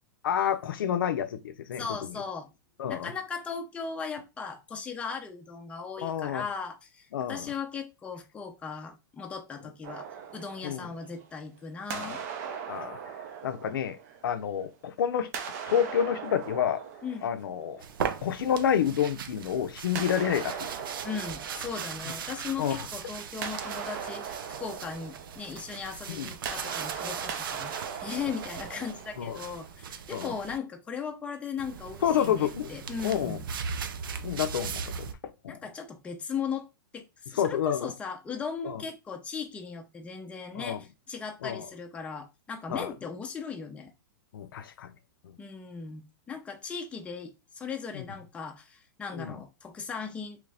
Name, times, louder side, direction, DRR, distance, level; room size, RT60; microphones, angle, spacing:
voice 1, 0.2-2.2 2.8-3.1 6.0-6.4 7.1-7.5 10.6-10.9 11.9-12.2 12.7-13.1 13.4-14.0 14.2-15.3 15.7-16.8 17.2-17.8 18.2-20.7 22.6-22.9 26.1-26.3 29.2-29.4 30.1-30.3 32.0-32.7 33.0-33.4 34.2-35.1 35.4-35.6 37.3-37.9 38.6-38.8 40.5-40.8 41.4-41.7 42.7-42.9 44.3-44.9 45.2-45.3 47.9-48.0 49.1-49.4, left 9 dB, 85° left, 0.5 m, -29 dB
voice 2, 1.8-2.5 2.9-12.2 17.0-17.3 21.0-27.7 28.0-33.4 35.5-36.7 36.9-43.9 45.4-50.4, left 5 dB, 10° left, 0.5 m, -38 dB
sound 1, 9.8-11.5 11.9-14.7 15.2-18.1 19.9-22.7 23.0-29.7, right 7 dB, 50° right, 0.6 m, -40 dB
sound 2, 17.8-30.6 31.6-35.1, right 7 dB, 90° right, 0.5 m, -39 dB
3.1 x 2.5 x 3.3 m
supercardioid pair, 145°, 11 cm